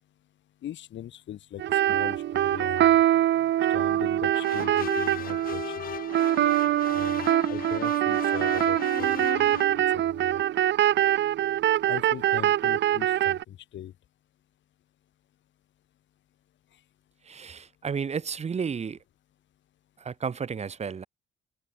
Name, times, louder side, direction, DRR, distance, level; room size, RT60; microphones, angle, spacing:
voice 1, 0.6-2.9 3.7-5.9 6.9-10.4 11.9-13.9, left 11 dB, 70° left, 1.4 m, -40 dB
sound 1, 1.6-13.4, right 12 dB, 65° right, 0.7 m, -24 dB
sound 2, 4.3-9.6, left 10 dB, 45° left, 0.6 m, -37 dB
voice 2, 17.3-19.0 20.0-21.1, right 6 dB, 35° right, 0.8 m, -32 dB
open air
cardioid pair, 90°, 20 cm